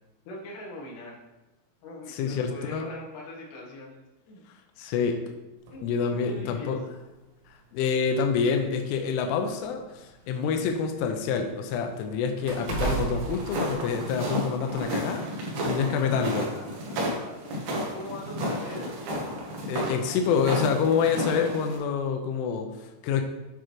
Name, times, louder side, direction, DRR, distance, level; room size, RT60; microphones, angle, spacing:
voice 1, 0.2-1.2 1.8-4.4 5.7-6.8 15.6-15.7 16.2-17.3 17.7-19.0 19.9-20.2, left 1 dB, 70° left, -3 dB, 3.2 m, -42 dB
voice 2, 2.1-2.9 4.8-5.2 5.8-6.8 7.7-16.5 19.7-23.2, left 6 dB, 90° left, 4 dB, 3.2 m, -27 dB
sound 1, 5.7-5.8 6.9-7.0 7.4-7.6 8.5-10.5 10.9-14.3 14.7-14.8, right 5 dB, 85° right, 3.9 m, -35 dB
sound 2, 12.5-21.8, equal, 65° right, 2.0 m, -32 dB
9.4 x 4.9 x 3.0 m, 1.0 s
omnidirectional pair, 5.5 m